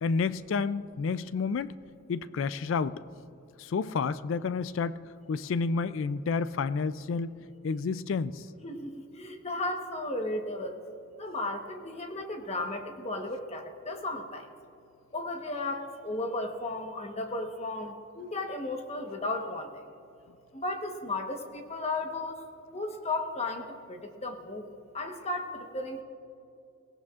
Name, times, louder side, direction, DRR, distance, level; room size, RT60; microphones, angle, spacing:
voice 1, 0.0-1.7 2.1-3.0 3.6-5.0 5.3-7.3 7.6-8.4, left 5 dB, 65° left, 15 dB, 0.4 m, -30 dB
voice 2, 9.2-10.7 11.2-14.4 15.1-19.7 20.5-22.4 22.7-23.6 23.9-24.7 24.9-26.0, left 2 dB, 30° left, 4 dB, 1.1 m, -34 dB
23.0 x 17.0 x 2.4 m, 2.5 s
head